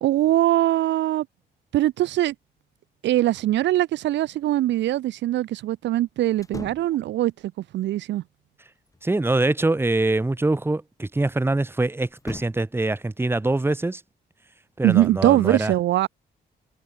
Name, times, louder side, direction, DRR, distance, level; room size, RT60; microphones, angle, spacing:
voice 1, 0.0-1.3 1.7-2.3 3.0-7.3 7.7-8.2 14.8-16.1, right 14 dB, 75° right, 0.5 m, -21 dB
sound 1, 6.4-7.0 8.6-9.5 12.1-12.7, left 2 dB, 20° left, 3.0 m, -40 dB
voice 2, 9.0-14.0 14.8-15.7, right 2 dB, 10° right, 1.2 m, -24 dB
cardioid pair, 80°, 19 cm